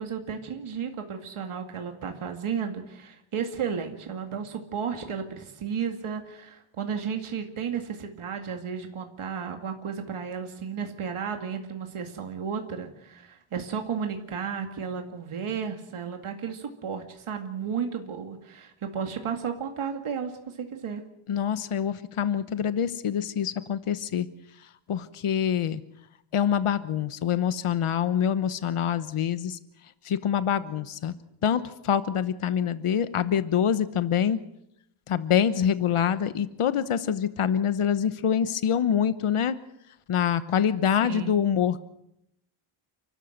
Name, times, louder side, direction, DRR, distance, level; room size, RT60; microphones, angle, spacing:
voice 1, 0.0-21.0 41.0-41.4, right 7 dB, 75° right, 5 dB, 2.3 m, -33 dB
voice 2, 21.3-24.3 24.9-25.8 26.3-29.6 30.0-31.1 31.4-34.4 35.1-39.6 40.1-41.8, left 8 dB, 85° left, 13 dB, 1.1 m, -25 dB
29.5 x 13.0 x 7.9 m, 0.80 s
wide cardioid pair, 125°, 50 cm